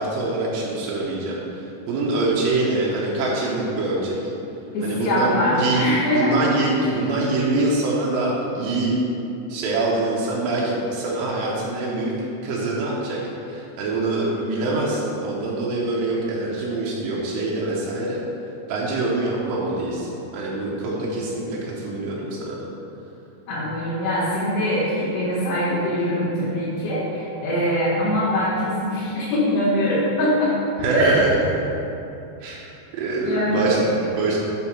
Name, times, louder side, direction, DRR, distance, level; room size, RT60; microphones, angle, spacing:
voice 1, 0.0-4.2 4.8-5.8 6.1-9.0 9.5-13.2 13.5-18.2 18.7-22.7 30.8-31.3 31.6-31.7 32.4-34.4, right 2 dB, 85° right, -5 dB, 3.1 m, -24 dB
voice 2, 4.7-6.4 6.8-6.9 23.5-30.6 30.9-31.1 33.2-33.9, left 1 dB, 75° left, -12 dB, 3.9 m, -23 dB
9.1 x 4.0 x 5.8 m, 2.9 s
omnidirectional pair, 4.9 m